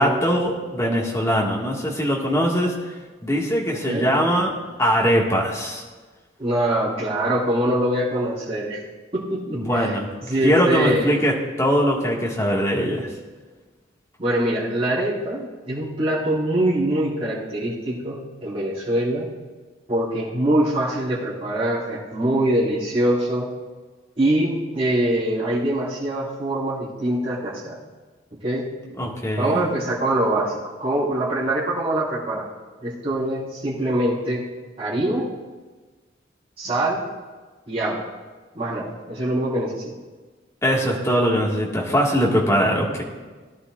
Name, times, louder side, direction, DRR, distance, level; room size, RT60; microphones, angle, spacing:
voice 1, 0.0-2.8 3.2-5.8 9.5-10.1 10.4-13.1 29.0-29.6 40.6-43.0, equal, 15° left, -3 dB, 1.7 m, -21 dB
voice 2, 6.4-8.8 9.1-9.9 10.2-11.1 14.2-19.3 19.9-23.5 24.2-27.8 28.3-28.7 29.4-32.5 32.8-34.4 34.8-35.3 36.6-37.0 37.7-38.1 38.5-39.9, right 1 dB, 30° right, -8 dB, 4.3 m, -23 dB
19.0 x 11.0 x 2.4 m, 1.3 s
head